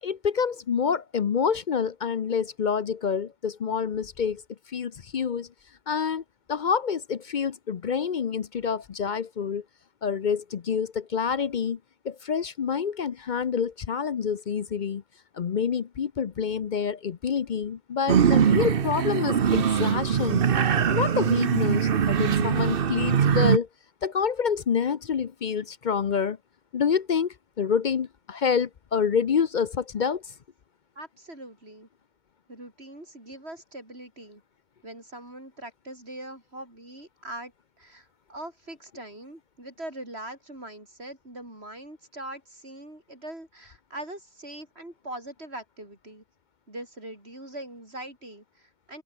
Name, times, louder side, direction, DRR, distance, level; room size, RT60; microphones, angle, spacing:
voice 1, 0.0-4.4 4.7-5.5 5.9-6.2 6.5-9.6 10.0-11.8 12.0-15.0 15.3-20.4 20.9-23.7 24.0-26.4 26.7-30.3, left 6 dB, 50° left, 0.8 m, -27 dB
sound 1, 18.1-23.6, right 7 dB, 60° right, 1.1 m, -22 dB
voice 2, 31.0-31.9 32.5-34.4 34.8-46.2 46.7-49.0, right 1 dB, 80° right, 8.1 m, -42 dB
open air
omnidirectional pair, 1.1 m